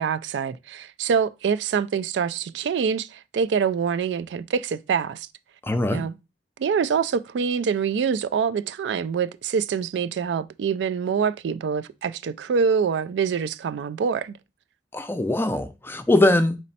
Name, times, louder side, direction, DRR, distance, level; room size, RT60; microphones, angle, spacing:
voice 1, 0.0-5.3 5.9-6.2 6.6-14.4, right 6 dB, 75° right, 0.3 m, -25 dB
voice 2, 5.7-6.0 14.9-16.6, left 1 dB, 15° left, 0.4 m, -21 dB
4.1 x 3.1 x 4.1 m
head